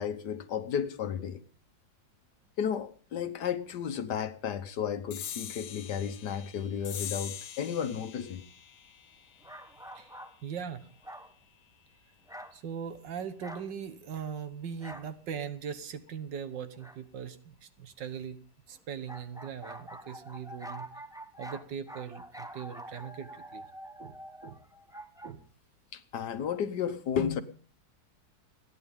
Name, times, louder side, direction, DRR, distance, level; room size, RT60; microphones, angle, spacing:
voice 1, 0.0-1.4 2.6-8.4 25.9-27.4, left 8 dB, 65° left, 1.6 m, -33 dB
sound 1, 5.1-12.0, left 10 dB, 85° left, 1.7 m, -44 dB
sound 2, 9.4-10.4 11.0-11.3 12.3-12.6 13.4-13.7 14.8-15.1 16.8-17.0 19.1-25.3, equal, 5° right, 0.8 m, -46 dB
voice 2, 10.4-10.9 12.5-18.4 18.7-20.9 21.4-23.6 24.0-24.2 24.4-24.6 25.2-25.4, right 7 dB, 75° right, 1.8 m, -40 dB
29.5 x 10.0 x 3.6 m
omnidirectional pair, 2.0 m